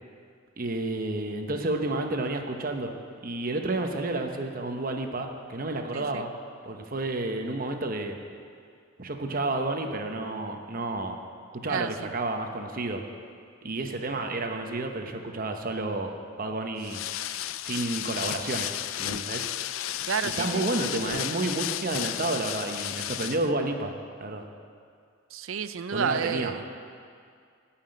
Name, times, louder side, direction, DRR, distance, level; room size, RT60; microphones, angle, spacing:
voice 1, 0.6-2.9 3.2-6.3 6.6-8.2 9.0-11.2 11.5-13.0 13.6-16.1 16.4-17.0 17.6-18.7 19.0-19.4 20.2-23.9 24.2-24.4 25.9-26.5, right 2 dB, 45° right, 4 dB, 0.9 m, -30 dB
voice 2, 5.9-6.2 11.7-12.1 20.1-20.6 25.3-26.6, right 6 dB, 85° right, 12 dB, 0.5 m, -30 dB
sound 1, 16.8-23.5, left 12 dB, 80° left, 0.4 m, -33 dB
14.0 x 5.9 x 8.7 m, 2.3 s
head